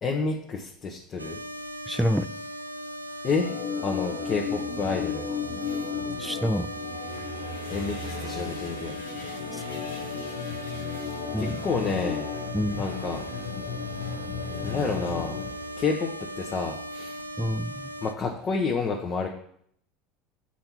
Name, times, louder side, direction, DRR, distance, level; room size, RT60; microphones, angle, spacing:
voice 1, 0.0-1.4 3.2-3.5 3.8-5.2 5.6-5.9 7.7-8.9 10.0-10.1 11.4-12.3 12.8-13.2 14.6-15.4 15.8-16.1 16.4-17.2 18.0-19.3, left 4 dB, 35° left, 1 dB, 1.0 m, -29 dB
sound 1, 1.2-18.1, equal, 90° right, 0.3 m, -38 dB
voice 2, 1.9-2.2 6.2-6.7 11.3-11.5 12.5-12.8 17.4-17.7, equal, ahead, 13 dB, 0.4 m, -26 dB
Organ, 3.4-15.5, left 7 dB, 55° left, 0.9 m, -35 dB
sound 2, 3.9-18.6, right 2 dB, 80° left, 1.3 m, -44 dB
7.4 x 4.5 x 5.7 m, 0.66 s
figure-of-eight pair, 75°, 0 cm